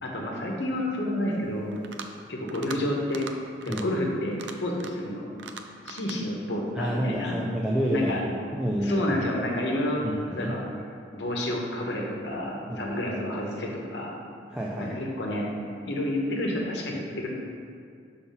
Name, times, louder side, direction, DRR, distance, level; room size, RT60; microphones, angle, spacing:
voice 1, 0.0-1.7 2.3-3.3 3.6-5.3 5.9-7.3 7.9-8.2 8.8-10.0 10.3-10.6 11.1-14.1 14.8-15.5 15.8-17.3, left 1 dB, 75° left, -1 dB, 1.1 m, -29 dB
sound 1, 1.7-2.2 2.5-2.8 3.1-3.3 3.6-3.8 4.3-5.1 5.4-6.2, right 5 dB, 85° right, 0.5 m, -40 dB
voice 2, 6.7-8.2 8.5-9.1 10.0-10.5 12.7-13.0 14.5-14.9, equal, 5° right, -3 dB, 0.4 m, -29 dB
5.7 x 4.0 x 5.6 m, 2.3 s
head